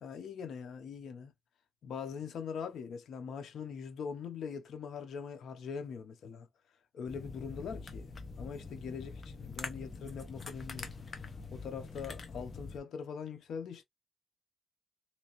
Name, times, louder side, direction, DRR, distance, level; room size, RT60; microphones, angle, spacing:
voice 1, 0.0-1.3 1.8-6.5 6.9-8.1 8.4-10.9 11.5-13.8, left 6 dB, 85° left, 0.6 m, -42 dB
sound 1, 7.1-12.8, left 4 dB, 45° left, 0.9 m, -45 dB
3.3 x 2.9 x 2.9 m
cardioid pair, 75°, 0 cm